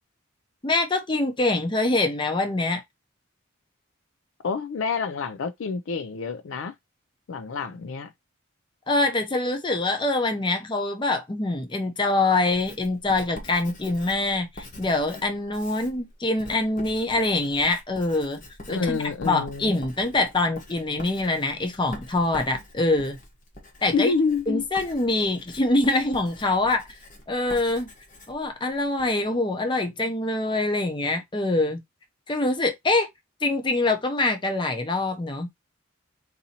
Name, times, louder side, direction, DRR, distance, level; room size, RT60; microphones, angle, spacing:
voice 1, 0.6-2.8 8.9-18.4 18.7-23.2 23.8-24.1 24.5-26.8 27.3-27.9 28.3-31.8 32.3-33.1 33.4-35.5, left 2 dB, 25° left, 0.6 m, -24 dB
voice 2, 4.4-6.7 7.3-8.1 18.7-19.8 23.9-24.6, left 5 dB, 70° left, 0.4 m, -27 dB
Writing, 12.5-29.1, left 1 dB, 40° left, 1.0 m, -45 dB
4.0 x 2.7 x 2.8 m
head